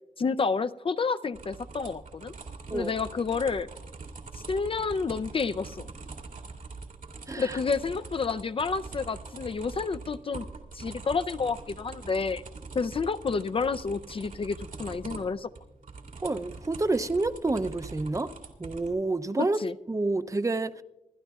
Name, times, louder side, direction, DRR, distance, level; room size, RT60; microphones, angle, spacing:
voice 1, 0.2-2.3 2.7-3.7 4.5-5.9 7.4-10.5 10.7-12.4 12.7-15.5 19.6-19.7, left 4 dB, 45° left, 0.4 m, -29 dB
sound 1, 1.3-18.9, right 4 dB, 85° right, 2.1 m, -44 dB
voice 2, 7.3-7.6 16.2-18.3 18.6-19.6 19.9-20.8, right 2 dB, 25° right, 0.5 m, -28 dB
26.5 x 12.5 x 2.3 m
wide cardioid pair, 120°, 13 cm